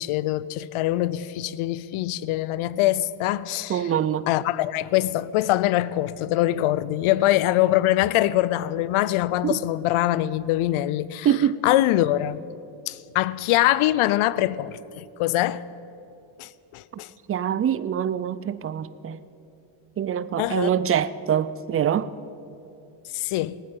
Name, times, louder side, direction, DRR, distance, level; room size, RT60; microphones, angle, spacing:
voice 1, 0.0-3.9 4.3-12.4 12.9-15.6 16.4-17.1 20.4-20.7 23.1-23.6, left 15 dB, 80° left, 0.6 m, -23 dB
voice 2, 3.7-4.3 9.4-9.6 11.2-11.6 17.3-19.2 20.0-22.1, right 9 dB, 30° right, 0.4 m, -24 dB
18.5 x 9.4 x 7.1 m
cardioid pair, 135°, 50 cm